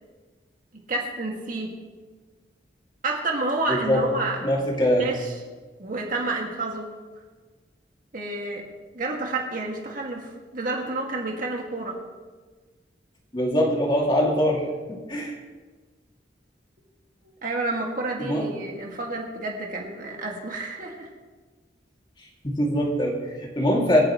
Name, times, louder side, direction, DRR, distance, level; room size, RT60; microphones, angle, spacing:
voice 1, 0.7-1.7 3.0-4.4 5.0-5.3 5.8-6.9 8.1-8.7 8.9-12.0 17.4-21.1, right 2 dB, 50° right, 0 dB, 2.0 m, -29 dB
voice 2, 3.7-4.0 4.4-5.1 13.3-15.4 18.2-18.5 22.4-24.0, equal, 25° left, -2 dB, 2.3 m, -23 dB
27.0 x 9.2 x 3.1 m, 1.3 s
head